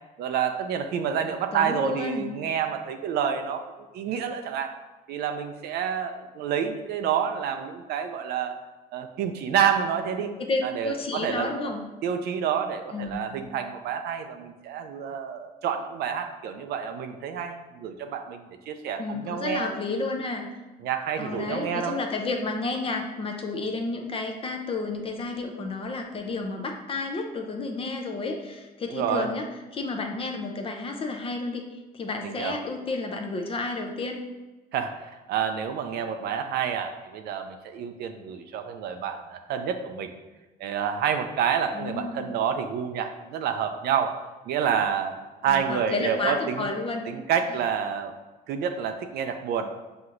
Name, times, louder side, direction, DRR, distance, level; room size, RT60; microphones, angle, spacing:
voice 1, 0.2-3.6 3.9-4.7 5.1-8.5 8.9-10.3 10.6-11.5 12.0-19.7 20.8-22.0 28.9-29.3 32.2-32.6 34.7-40.1 40.6-44.2 44.5-45.1 45.4-46.7 47.1-48.1 48.5-49.7, right 8 dB, 70° right, 6 dB, 0.4 m, -28 dB
voice 2, 1.5-2.3 10.2-11.8 12.9-13.4 19.0-20.5 21.2-29.5 29.7-31.6 31.9-34.2 41.7-42.3 45.5-47.1, left 3 dB, 35° left, 3 dB, 0.5 m, -31 dB
6.0 x 2.9 x 2.5 m, 1.1 s
cardioid pair, 110°, 17 cm